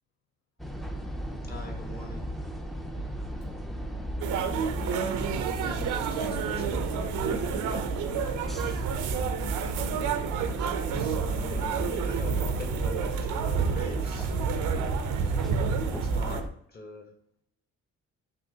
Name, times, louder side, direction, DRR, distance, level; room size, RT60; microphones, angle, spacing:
sound 1, 0.6-16.5, equal, ahead, 0.4 m, -35 dB
voice 1, 1.4-2.3 5.4-7.8 10.9-17.1, left 2 dB, 30° left, 2 dB, 1.1 m, -43 dB
voice 2, 3.7-4.9 8.2-8.4 9.0-10.3 15.6-15.8, left 7 dB, 55° left, 1 dB, 0.6 m, -49 dB
sound 2, 4.2-16.4, right 7 dB, 85° right, 0.5 m, -30 dB
5.6 x 3.0 x 2.8 m, 0.72 s
cardioid pair, 90°, 30 cm